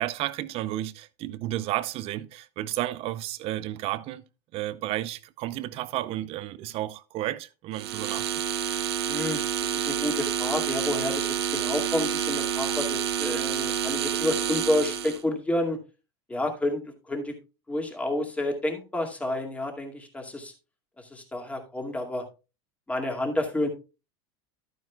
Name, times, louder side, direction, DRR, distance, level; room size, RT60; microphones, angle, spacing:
voice 1, 0.0-4.2 4.5-8.4, right 14 dB, 50° right, 0.6 m, -32 dB
sound 1, 7.7-15.2, right 8 dB, 85° right, 1.0 m, -28 dB
voice 2, 9.1-15.8 16.3-17.4 17.7-20.5 21.0-22.3 22.9-23.7, left 1 dB, 10° left, 2.2 m, -30 dB
11.5 x 9.3 x 2.3 m
supercardioid pair, 110°, 13 cm